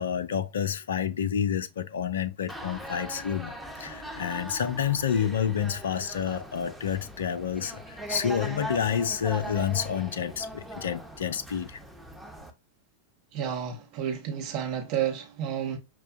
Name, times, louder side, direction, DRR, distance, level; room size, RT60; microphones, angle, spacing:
voice 1, 0.0-3.5 3.8-11.8, left 8 dB, 65° left, 0.5 m, -29 dB
sound 1, 2.5-12.5, right 1 dB, 5° right, 0.8 m, -40 dB
voice 2, 13.3-15.8, right 9 dB, 45° right, 0.9 m, -31 dB
6.1 x 2.2 x 2.5 m
figure-of-eight pair, 90°, 0 cm